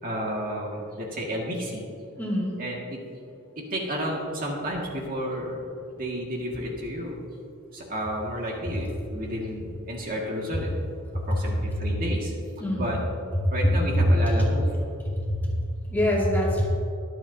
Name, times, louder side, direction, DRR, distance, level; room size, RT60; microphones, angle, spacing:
voice 1, 0.0-1.9 2.6-3.0 3.6-5.6 6.0-7.2 7.7-10.7 11.3-12.3 12.7-13.0 13.5-14.7, equal, 40° right, -2 dB, 1.9 m, -31 dB
voice 2, 2.2-2.6 11.1-11.2 12.6-12.9 13.4-13.5 13.9-14.1 14.4-14.5 15.1-15.5 15.9-16.7, equal, 10° left, -5 dB, 2.4 m, -24 dB
22.5 x 8.9 x 2.7 m, 2.7 s
head